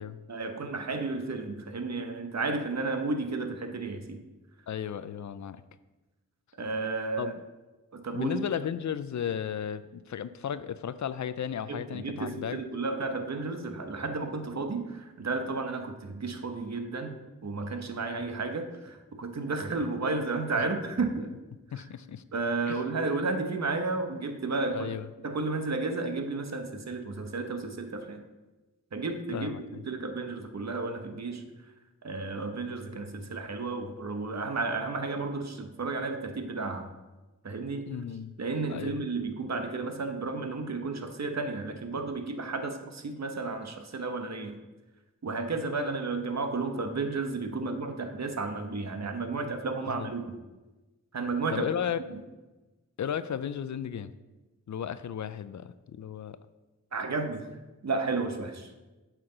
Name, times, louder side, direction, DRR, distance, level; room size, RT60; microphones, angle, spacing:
voice 1, 0.3-4.2 6.6-7.3 7.9-8.3 11.7-21.3 21.8-21.9 22.3-24.9 25.2-28.2 28.9-29.5 29.8-31.4 32.0-36.9 37.4-37.9 38.4-44.6 45.2-50.2 51.1-51.7 52.1-52.2 56.9-57.5 57.8-58.7, right 3 dB, 55° right, 6 dB, 0.9 m, -32 dB
voice 2, 4.7-5.6 7.2-7.3 8.1-12.6 21.7-22.2 22.7-22.8 24.7-25.1 29.3-29.8 37.9-38.3 38.7-39.0 49.9-50.1 51.5-52.0 53.0-54.1 54.7-56.4, left 8 dB, 65° left, 14 dB, 0.4 m, -34 dB
7.8 x 5.9 x 3.9 m, 1.1 s
wide cardioid pair, 55°, 32 cm